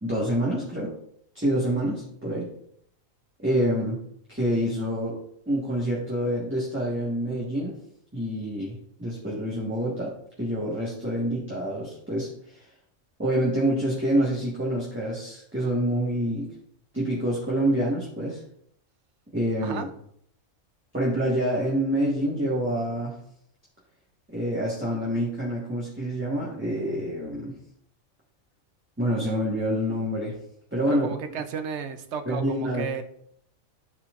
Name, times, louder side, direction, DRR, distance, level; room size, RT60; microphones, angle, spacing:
voice 1, 0.0-0.9 1.3-2.5 3.4-4.0 4.3-5.1 5.5-7.7 8.1-10.1 10.4-12.3 13.2-16.5 16.9-18.4 19.3-19.9 20.9-23.2 24.3-27.5 29.0-30.3 30.7-31.1 32.3-32.9, right 1 dB, 10° right, -6 dB, 1.4 m, -27 dB
voice 2, 30.9-33.0, right 6 dB, 60° right, 8 dB, 0.9 m, -33 dB
12.5 x 4.3 x 2.5 m, 0.69 s
omnidirectional pair, 1.4 m